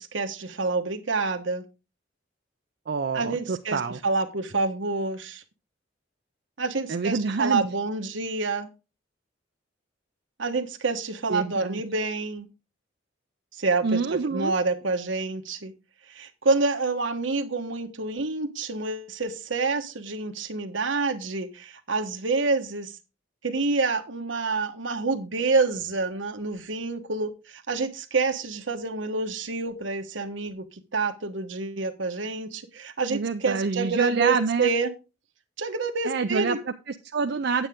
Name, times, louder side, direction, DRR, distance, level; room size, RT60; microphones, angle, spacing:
voice 1, 0.0-1.6 3.1-5.4 6.6-8.7 10.4-12.5 13.6-15.7 16.1-22.9 23.4-30.6 30.9-34.9 35.6-36.6, right 3 dB, 75° right, 1.3 m, -28 dB
voice 2, 2.9-4.0 6.9-7.6 11.3-11.8 13.8-14.5 33.1-34.7 36.1-37.7, right 4 dB, 60° right, 0.5 m, -27 dB
8.9 x 8.9 x 3.6 m
head